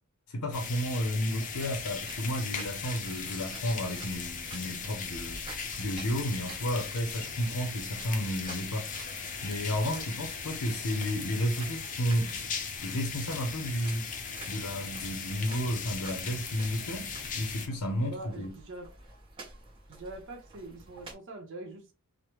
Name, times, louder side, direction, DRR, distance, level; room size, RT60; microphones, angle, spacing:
voice 1, 0.3-5.4 5.8-12.4 12.8-14.1 14.5-18.5, equal, 85° left, 0.6 m, -32 dB
sound 1, 0.5-17.7, left 6 dB, 35° left, 0.5 m, -38 dB
sound 2, 1.6-21.1, right 2 dB, 25° right, 0.9 m, -50 dB
voice 2, 18.1-18.9 19.9-21.9, right 2 dB, 60° right, 0.8 m, -43 dB
3.1 x 2.1 x 2.9 m
head